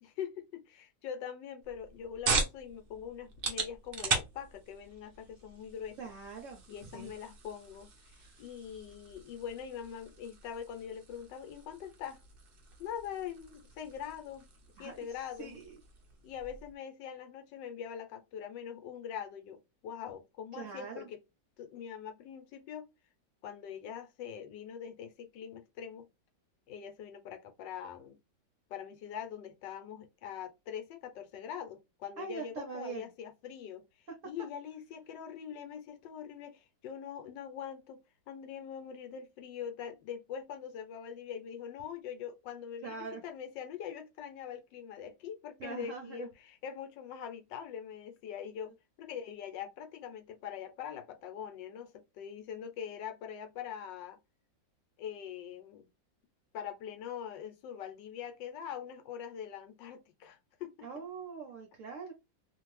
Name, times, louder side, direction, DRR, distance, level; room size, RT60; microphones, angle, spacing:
voice 1, 0.0-6.1 6.7-12.2 12.8-14.5 14.8-15.6 16.2-21.2 21.6-22.9 23.4-26.1 26.7-28.2 28.7-38.0 38.3-54.2 55.0-55.9 56.5-60.9, left 8 dB, 80° left, 1.3 m, -43 dB
sound 1, 1.6-16.7, right 4 dB, 80° right, 0.5 m, -40 dB
voice 2, 6.0-6.6 6.9-7.1 8.1-8.4 14.8-15.8 20.5-21.1 32.2-33.1 42.8-43.2 45.6-46.3 60.8-62.1, right 5 dB, 60° right, 0.8 m, -43 dB
2.8 x 2.5 x 3.0 m
omnidirectional pair, 2.0 m